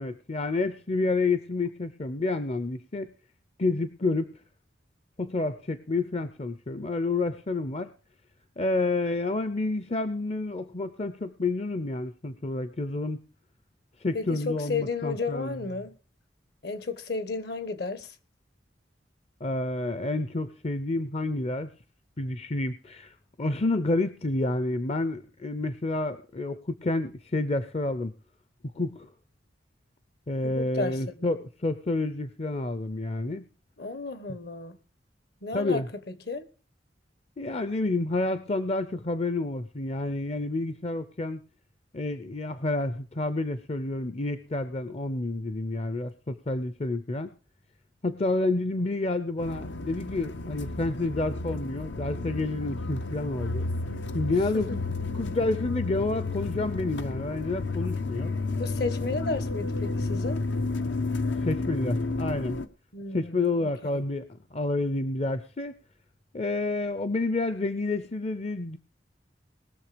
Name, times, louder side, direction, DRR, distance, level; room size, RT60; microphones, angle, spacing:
voice 1, 0.0-3.1 3.6-4.3 5.2-7.9 8.6-13.2 14.0-15.5 19.4-21.7 22.2-28.1 28.8-29.1 30.3-33.4 35.5-35.9 37.4-41.4 41.9-47.3 48.0-53.7 54.1-54.8 55.1-58.3 61.4-62.6 63.1-65.7 66.3-68.8, left 2 dB, 35° left, 0.6 m, -29 dB
voice 2, 14.1-15.9 16.6-18.1 30.4-31.3 33.8-34.8 35.4-36.5 54.5-54.8 58.6-60.4 62.9-64.0, left 3 dB, 60° left, 1.2 m, -33 dB
sound 1, 49.4-62.7, left 3 dB, 80° left, 0.8 m, -31 dB
20.0 x 6.8 x 5.0 m
head